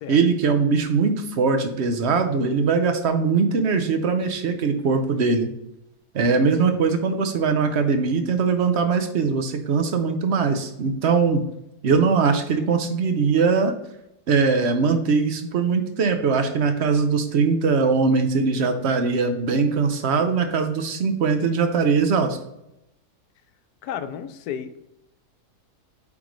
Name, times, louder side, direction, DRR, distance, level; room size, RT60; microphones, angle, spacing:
voice 1, 0.1-5.5 6.1-11.4 11.8-13.7 14.3-22.4, right 5 dB, 55° right, 7 dB, 0.8 m, -21 dB
voice 2, 23.8-24.8, left 8 dB, 85° left, 10 dB, 1.1 m, -33 dB
8.8 x 3.7 x 3.1 m, 0.85 s
omnidirectional pair, 1.6 m